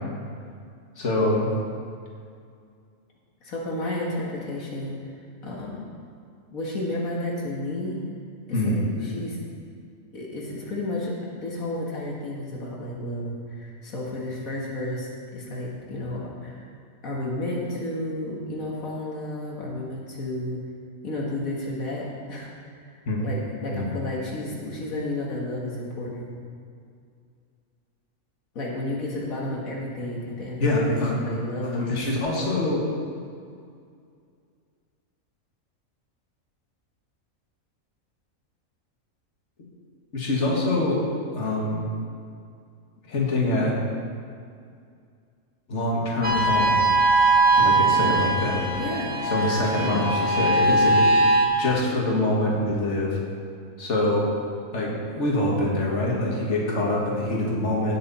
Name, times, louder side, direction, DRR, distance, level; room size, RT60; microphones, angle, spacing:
voice 1, 1.0-1.5 8.5-8.8 23.1-23.2 23.7-23.9 30.6-31.1 31.7-32.8 40.1-41.1 41.3-41.9 43.1-43.8 45.7-46.9 47.6-48.6 49.2-51.1 51.6-53.2 53.8-54.3 54.7-58.0, left 1 dB, 55° left, -3 dB, 2.1 m, -24 dB
voice 2, 3.4-5.0 5.4-5.8 6.5-8.0 8.5-9.4 10.1-16.7 17.0-20.6 21.0-22.5 22.9-26.3 28.6-32.1 47.6-48.2 48.7-49.3 49.6-50.1, left 1 dB, 80° left, -4 dB, 2.0 m, -32 dB
sound 1, 46.2-51.5, right 2 dB, 5° right, 1.4 m, -20 dB
17.0 x 6.7 x 4.2 m, 2.3 s
omnidirectional pair, 1.4 m